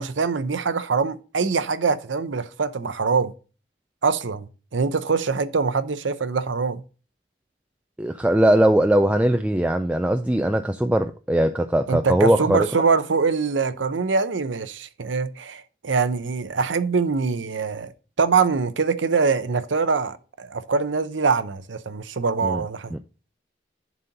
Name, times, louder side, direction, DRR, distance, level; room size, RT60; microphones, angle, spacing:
voice 1, 0.0-3.3 4.0-6.8 11.9-17.9 18.2-22.9, right 4 dB, 90° right, 0.7 m, -23 dB
voice 2, 8.0-12.7 22.4-22.6 22.9-23.0, right 1 dB, 5° right, 0.3 m, -20 dB
11.0 x 4.3 x 3.8 m
head